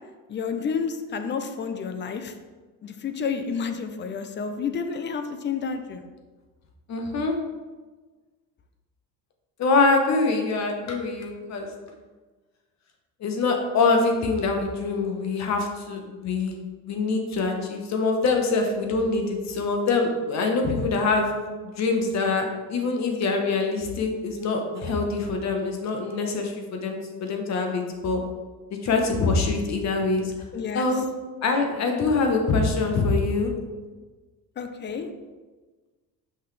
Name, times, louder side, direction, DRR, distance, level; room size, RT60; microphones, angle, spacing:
voice 1, 0.3-2.3 2.8-6.0 30.5-30.9 34.6-35.1, left 6 dB, 30° left, 8 dB, 0.5 m, -30 dB
voice 2, 6.9-7.3 9.6-11.7 13.2-16.6 16.8-21.4 21.6-28.2 28.8-30.3 30.7-31.0 31.4-33.5, left 3 dB, 45° left, 3 dB, 1.1 m, -24 dB
5.8 x 5.4 x 3.3 m, 1.3 s
cardioid pair, 125°, 36 cm